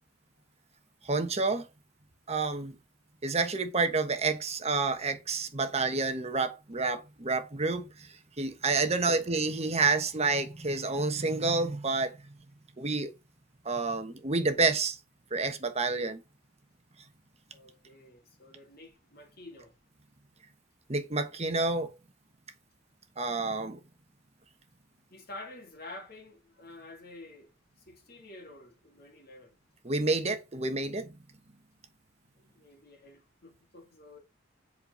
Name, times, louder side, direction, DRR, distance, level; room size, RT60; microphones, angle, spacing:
voice 1, 1.0-1.7 2.3-2.7 3.2-8.1 8.4-12.1 12.8-13.1 13.6-15.0 15.3-16.2 20.9-22.0 23.2-23.8 29.8-31.1, right 3 dB, 35° right, 1.1 m, -29 dB
voice 2, 17.5-19.7 25.1-27.5 27.9-29.5 32.3-34.2, left 2 dB, 55° left, 3.0 m, -49 dB
7.8 x 5.6 x 5.4 m
head